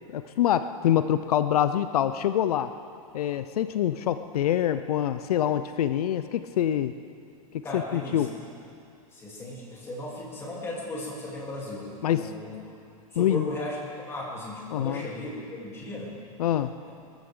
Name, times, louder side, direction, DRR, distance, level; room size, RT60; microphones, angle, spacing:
voice 1, 0.1-2.7 3.1-6.9 7.5-8.3 12.0-12.3 13.2-13.5 14.7-15.1 16.4-16.7, left 11 dB, 80° left, 11 dB, 0.6 m, -25 dB
voice 2, 7.6-8.3 9.1-12.5 13.1-16.1, left 1 dB, 15° left, -5 dB, 3.3 m, -36 dB
21.5 x 14.5 x 3.8 m, 2.5 s
supercardioid pair, 150°, 19 cm